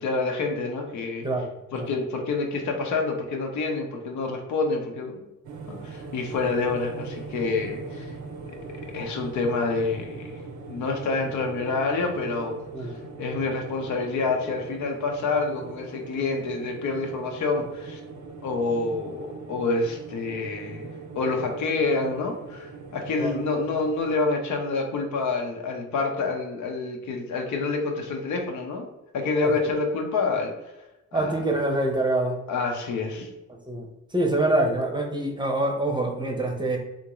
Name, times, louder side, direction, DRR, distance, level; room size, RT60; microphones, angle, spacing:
voice 1, 0.0-1.3 1.7-5.2 5.7-8.1 8.9-10.4 10.6-12.9 13.2-18.0 18.4-20.9 21.1-30.5 31.1-31.4 32.5-33.3, left 3 dB, 70° left, 2 dB, 0.8 m, -27 dB
sound 1, 5.4-24.1, right 3 dB, 65° right, 0.6 m, -41 dB
voice 2, 31.1-32.4 33.7-36.8, right 2 dB, 15° right, 1 dB, 0.7 m, -25 dB
3.5 x 2.5 x 3.0 m, 0.97 s
cardioid pair, 90°, 30 cm